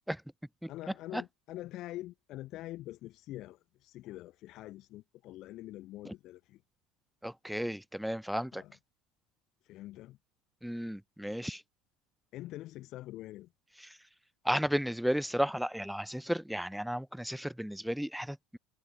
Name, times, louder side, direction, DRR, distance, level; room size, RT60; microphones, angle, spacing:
voice 1, 0.7-6.6 8.5-8.7 9.6-10.2 12.3-13.5, left 16 dB, 50° left, 2.0 m, -45 dB
voice 2, 7.2-8.6 10.6-11.6 13.9-14.0 14.4-18.6, equal, ahead, 0.4 m, -34 dB
figure-of-eight pair, 70°, 0 cm